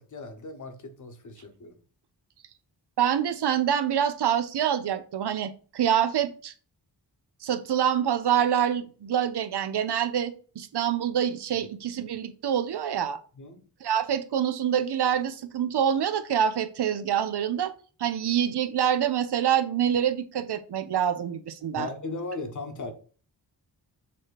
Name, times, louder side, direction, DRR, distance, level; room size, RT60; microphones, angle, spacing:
voice 1, 0.0-1.8 13.4-13.6 21.7-22.9, left 3 dB, 45° left, 8 dB, 1.0 m, -37 dB
voice 2, 3.0-6.5 7.4-13.2 13.8-17.7 18.0-21.9, right 9 dB, 70° right, 9 dB, 0.7 m, -26 dB
7.0 x 2.9 x 4.6 m, 0.40 s
wide cardioid pair, 165°, 41 cm